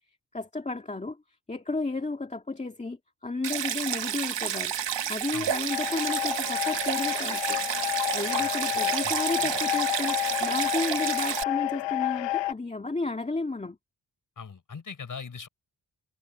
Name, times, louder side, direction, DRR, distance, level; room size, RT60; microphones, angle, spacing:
voice 1, 0.3-1.2 1.5-4.7 5.1-7.6 8.1-13.8, left 3 dB, 15° left, 2.1 m, -32 dB
Stream, 3.4-11.4, right 9 dB, 75° right, 1.1 m, -30 dB
sound 1, 5.7-12.5, left 17 dB, 85° left, 0.5 m, -30 dB
voice 2, 8.4-9.2 14.4-15.5, left 5 dB, 45° left, 4.7 m, -41 dB
wide cardioid pair, 175°, 43 cm